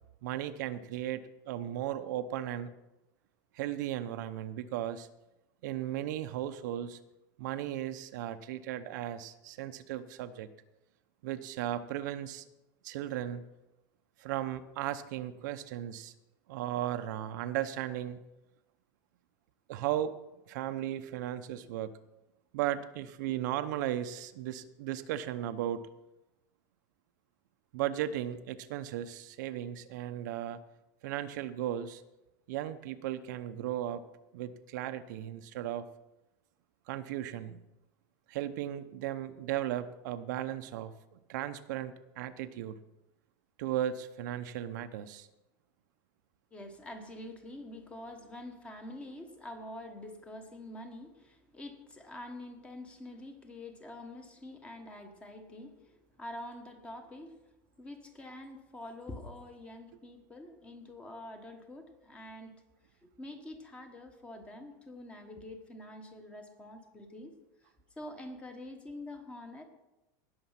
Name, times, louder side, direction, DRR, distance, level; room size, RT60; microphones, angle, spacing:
voice 1, 0.2-2.7 3.5-5.1 5.6-7.0 7.4-10.5 11.2-12.4 12.8-13.5 14.2-16.1 16.5-18.2 19.7-20.1 20.5-21.9 22.5-25.8 27.7-30.6 31.0-32.0 32.5-34.0 34.3-35.9 36.9-37.6 38.3-40.9 41.3-42.7 43.6-45.3, right 12 dB, 65° right, 10 dB, 0.8 m, -36 dB
voice 2, 46.5-57.4 57.8-62.6 63.0-67.3 68.0-69.6, left 1 dB, 10° left, 6 dB, 1.3 m, -46 dB
19.0 x 6.9 x 5.8 m, 0.98 s
supercardioid pair, 175°, 10 cm